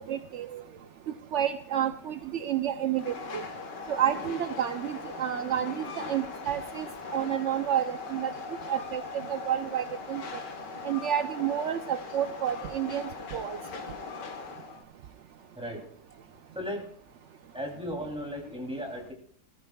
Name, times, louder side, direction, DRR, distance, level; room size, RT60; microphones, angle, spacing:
voice 1, 0.1-0.6 1.3-3.4 3.9-8.3 8.7-9.0 9.3-10.2 10.8-13.6, right 10 dB, 70° right, 10 dB, 0.7 m, -30 dB
Train, 2.9-14.8, left 4 dB, 90° left, 2.1 m, -40 dB
voice 2, 16.5-16.9 17.5-19.1, equal, 5° right, -1 dB, 2.9 m, -35 dB
20.5 x 14.0 x 2.3 m, 0.66 s
omnidirectional pair, 1.8 m